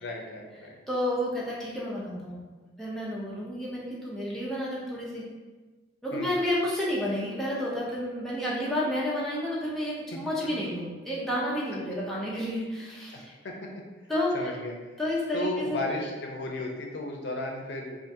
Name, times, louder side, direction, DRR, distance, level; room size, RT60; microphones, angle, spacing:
voice 1, 0.0-0.7 6.1-6.3 13.1-13.7 14.3-14.7 15.3-18.0, left 2 dB, 70° left, 1 dB, 0.5 m, -34 dB
voice 2, 0.9-2.4 2.8-5.2 6.0-13.3 14.1-14.5 15.0-15.9, left 1 dB, ahead, -7 dB, 0.6 m, -30 dB
3.5 x 2.5 x 2.7 m, 1.3 s
head